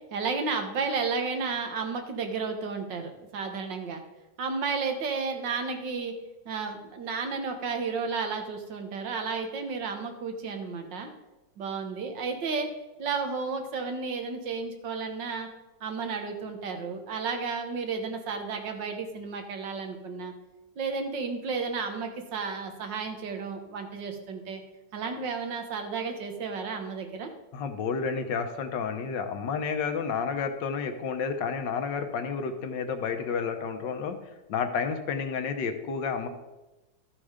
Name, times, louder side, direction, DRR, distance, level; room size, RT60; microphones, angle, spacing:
voice 1, 0.1-4.0 4.4-6.1 6.5-11.1 11.6-12.7 13.0-15.5 15.8-20.3 20.8-24.6 24.9-27.3, right 4 dB, 85° right, 5 dB, 1.9 m, -32 dB
voice 2, 27.5-34.2 34.5-36.3, left 5 dB, 85° left, 6 dB, 1.7 m, -30 dB
13.5 x 6.0 x 5.0 m, 1.1 s
omnidirectional pair, 1.9 m